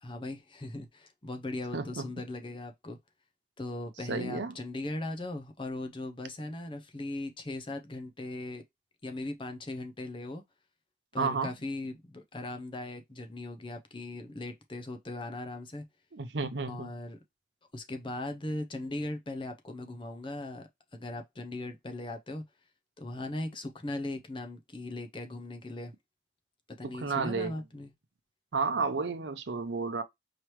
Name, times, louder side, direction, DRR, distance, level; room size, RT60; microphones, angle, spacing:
voice 1, 0.0-3.0 3.6-8.6 9.0-10.4 11.1-15.9 16.7-17.2 17.7-22.4 23.0-25.9 26.8-27.9, left 2 dB, 30° left, 0.6 m, -39 dB
voice 2, 1.7-2.1 4.1-4.5 11.2-11.5 16.1-16.9 26.8-27.5 28.5-30.0, right 4 dB, 80° right, 0.7 m, -31 dB
4.8 x 3.1 x 3.0 m
head